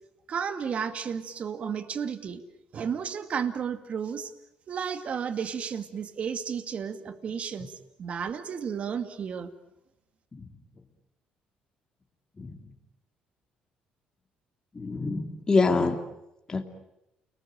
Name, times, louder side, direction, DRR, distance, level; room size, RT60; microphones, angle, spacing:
voice 1, 0.3-2.4 2.7-4.3 4.7-9.5, right 7 dB, 50° right, 9 dB, 2.2 m, -33 dB
voice 2, 14.7-16.0 16.5-16.6, left 3 dB, 25° left, 4 dB, 2.8 m, -26 dB
29.5 x 20.5 x 9.0 m, 0.89 s
cardioid pair, 105°, 3 cm